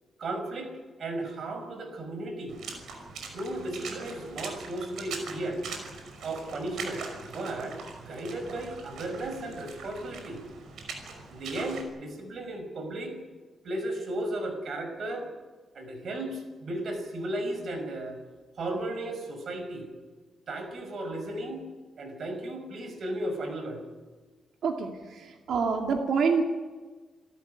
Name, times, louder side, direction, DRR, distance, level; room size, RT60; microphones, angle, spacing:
voice 1, 0.2-0.7 1.0-2.6 3.3-5.6 6.2-7.0 7.3-10.4 11.3-13.2 13.6-15.3 15.7-18.2 18.6-19.9 20.5-21.6 22.0-23.8, right 1 dB, 50° right, 6 dB, 5.8 m, -35 dB
Water / Splash splatter, 2.5-11.8, right 4 dB, 85° right, 5.7 m, -42 dB
voice 2, 24.6-26.4, right 5 dB, 70° right, 2 dB, 2.4 m, -27 dB
28.0 x 14.0 x 9.6 m, 1.3 s
wide cardioid pair, 155°, 0 cm